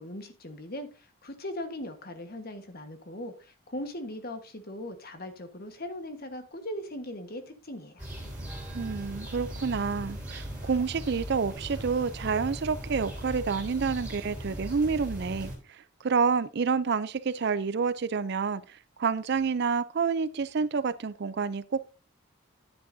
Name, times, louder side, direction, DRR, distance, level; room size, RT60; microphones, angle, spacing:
voice 1, 0.0-8.1, left 1 dB, 45° left, 1.3 m, -39 dB
sound 1, 8.0-15.6, equal, 5° right, 3.4 m, -39 dB
voice 2, 8.7-21.8, right 5 dB, 50° right, 0.4 m, -29 dB
10.0 x 9.5 x 2.7 m
head